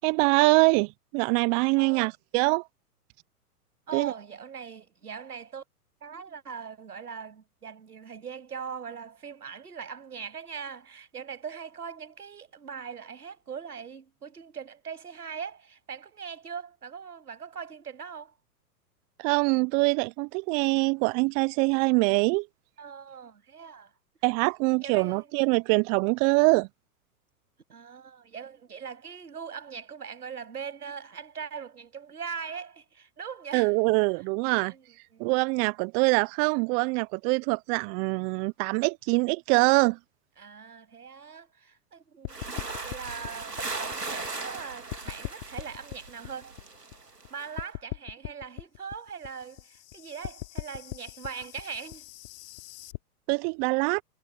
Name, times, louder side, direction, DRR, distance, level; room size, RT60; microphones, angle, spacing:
voice 1, 0.0-2.6 3.9-4.1 19.2-22.5 24.2-26.7 33.5-34.7 35.2-40.0 53.3-54.0, right 32 dB, 15° right, 0.4 m, -24 dB
voice 2, 1.8-2.1 3.9-5.6 6.0-18.3 22.8-23.9 24.4-25.3 27.7-33.7 34.6-35.3 40.4-42.4 42.8-43.6 43.9-46.6 47.3-52.1, right 6 dB, 75° right, 7.8 m, -41 dB
sound 1, 42.2-44.6 44.9-47.3 47.6-53.0, left 19 dB, 45° left, 3.3 m, -40 dB
sound 2, 42.3-47.5, right 3 dB, 90° right, 3.4 m, -38 dB
figure-of-eight pair, 105°, 47 cm